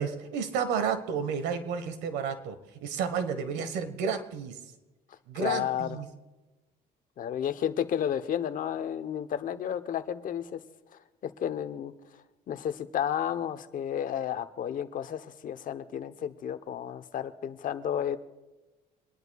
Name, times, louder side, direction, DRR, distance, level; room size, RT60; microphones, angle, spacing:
voice 1, 0.0-2.6 2.8-4.6 5.3-6.1, right 6 dB, 90° right, 10 dB, 1.4 m, -31 dB
voice 2, 5.3-6.0 7.2-10.6 11.2-11.9 12.5-18.2, left 9 dB, 55° left, 10 dB, 0.9 m, -32 dB
27.5 x 11.0 x 2.4 m, 1.1 s
cardioid pair, 110°, 17 cm